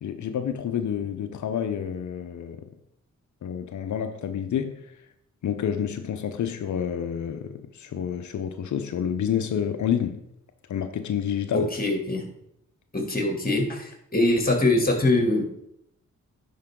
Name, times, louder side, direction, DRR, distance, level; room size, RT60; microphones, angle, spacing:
voice 1, 0.0-2.7 3.4-4.8 5.4-10.2 10.7-11.7, left 8 dB, 65° left, 0.8 m, -29 dB
voice 2, 11.5-12.3 12.9-15.7, left 2 dB, 30° left, 2.7 m, -23 dB
10.5 x 5.5 x 3.8 m
supercardioid pair, 50°, 32 cm